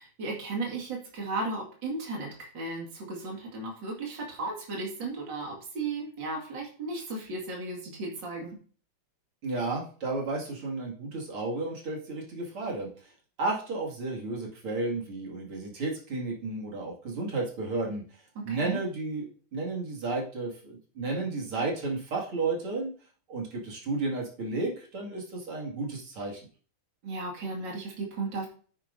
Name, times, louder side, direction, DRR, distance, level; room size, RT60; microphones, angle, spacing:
voice 1, 0.0-8.6 18.4-18.8 27.0-28.5, right 3 dB, 60° right, -1 dB, 2.9 m, -35 dB
voice 2, 9.4-13.1 13.4-22.9 23.3-26.4, right 3 dB, 85° right, -2 dB, 3.3 m, -33 dB
9.9 x 9.4 x 2.7 m, 0.42 s
omnidirectional pair, 2.3 m